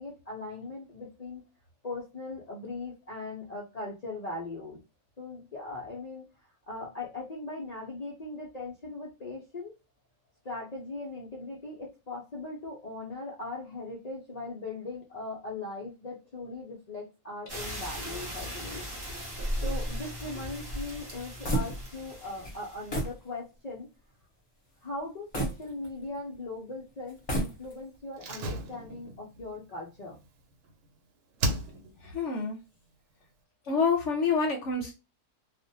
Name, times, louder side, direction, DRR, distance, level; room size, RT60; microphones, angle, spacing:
voice 1, 0.0-1.4 1.8-4.8 5.2-6.2 6.7-9.7 10.4-18.9 19.6-23.9 24.8-30.2, left 2 dB, 85° left, -4 dB, 0.3 m, -39 dB
sound 1, 17.5-23.1, equal, 25° right, 0.6 m, -41 dB
sound 2, 19.3-22.2 22.4-22.6 22.9-23.2 23.7-23.8 25.3-26.3 27.1-28.0, equal, 30° left, 0.7 m, -32 dB
Slam, 28.2-30.9 31.4-32.1 32.4-32.5, right 1 dB, 85° right, 1.1 m, -35 dB
voice 2, 32.0-32.6 33.6-34.9, left 5 dB, 65° left, 2 dB, 0.8 m, -27 dB
2.4 x 2.1 x 2.7 m, 0.28 s
omnidirectional pair, 1.6 m